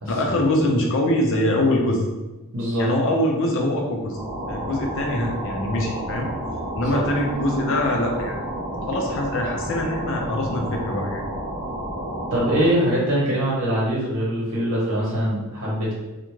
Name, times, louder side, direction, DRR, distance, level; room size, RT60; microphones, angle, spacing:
voice 1, 0.1-2.0 2.8-4.2 4.5-6.3 6.7-8.4 8.9-11.2, left 1 dB, 60° left, 1 dB, 0.5 m, -23 dB
voice 2, 2.5-2.9 6.9-7.0 12.3-15.9, equal, 60° right, -6 dB, 0.8 m, -22 dB
sound 1, 4.0-12.9, right 1 dB, 30° right, 0.8 m, -31 dB
2.4 x 2.2 x 3.0 m, 1.1 s
head